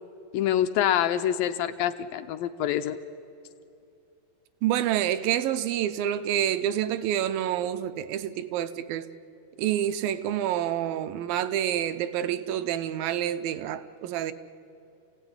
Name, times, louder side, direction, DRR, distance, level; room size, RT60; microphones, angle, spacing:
voice 1, 0.3-3.0, left 11 dB, 75° left, 2.2 m, -26 dB
voice 2, 4.6-9.1 9.6-14.3, right 11 dB, 80° right, 2.3 m, -28 dB
28.0 x 16.5 x 9.6 m
omnidirectional pair, 4.4 m